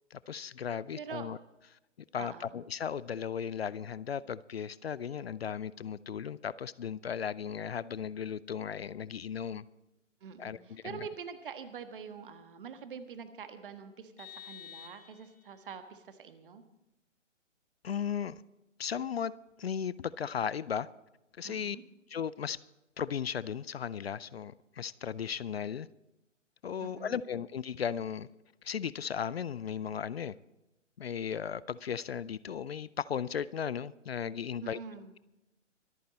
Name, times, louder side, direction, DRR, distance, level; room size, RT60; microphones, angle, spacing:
voice 1, 0.1-1.4 2.1-9.6 10.4-11.0 17.8-18.4 18.8-19.3 19.6-20.9 21.3-21.8 22.1-22.6 23.0-25.9 26.6-28.3 28.6-30.4 31.0-34.8, left 8 dB, 55° left, 19 dB, 0.5 m, -36 dB
voice 2, 1.0-1.3 2.2-2.5 10.2-16.6 21.4-21.8 26.8-27.2 34.6-35.1, right 6 dB, 45° right, 10 dB, 1.5 m, -45 dB
Vehicle horn car horn honking, 14.2-15.6, left 10 dB, 25° left, 2.2 m, -50 dB
24.0 x 9.3 x 4.2 m, 0.95 s
figure-of-eight pair, 135°, 37 cm